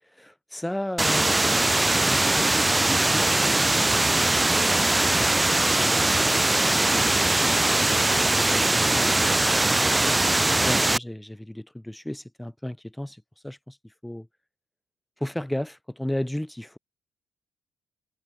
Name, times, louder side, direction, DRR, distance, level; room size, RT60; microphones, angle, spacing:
voice 1, 0.1-3.3 3.8-6.4 6.9-9.8 10.0-10.2 10.6-14.3 15.2-16.8, left 1 dB, 5° left, 4.5 m, -35 dB
sound 1, 1.0-11.0, right 2 dB, 15° right, 2.9 m, -21 dB
cardioid pair, 90°, 0 cm